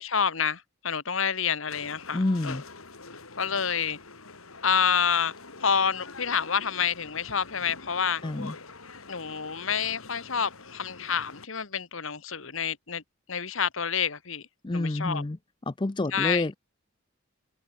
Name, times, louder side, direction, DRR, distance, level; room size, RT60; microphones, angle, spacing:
voice 1, 0.0-2.6 3.4-4.0 4.6-5.3 5.6-8.2 9.1-13.0 13.3-15.2 16.1-16.5, left 7 dB, 70° left, 1.5 m, -28 dB
sound 1, 1.7-11.5, left 3 dB, 90° left, 4.3 m, -46 dB
voice 2, 2.1-2.6 8.2-8.5 14.6-15.4 15.7-16.6, left 2 dB, 20° left, 0.5 m, -28 dB
head